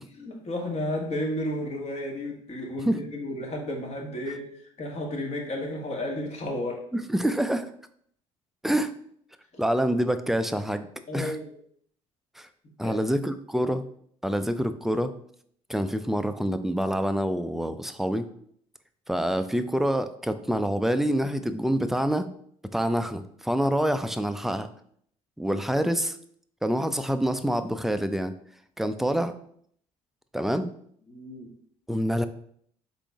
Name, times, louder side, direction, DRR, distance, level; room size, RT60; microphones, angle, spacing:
voice 1, 0.2-4.4 4.8-6.9 9.5-9.6 11.1-11.5 12.8-13.0 31.1-31.5, left 1 dB, 40° left, 0 dB, 1.3 m, -32 dB
voice 2, 6.9-7.7 8.6-8.9 9.6-10.9 11.1-11.4 12.4-12.5 12.8-13.8 14.2-15.1 15.7-18.3 19.1-22.3 22.7-24.7 25.4-26.2 26.6-28.3 28.8-29.3 30.3-30.7 31.9-32.3, equal, ahead, 10 dB, 0.4 m, -26 dB
4.1 x 3.7 x 3.5 m, 0.64 s
hypercardioid pair, 60°, 16 cm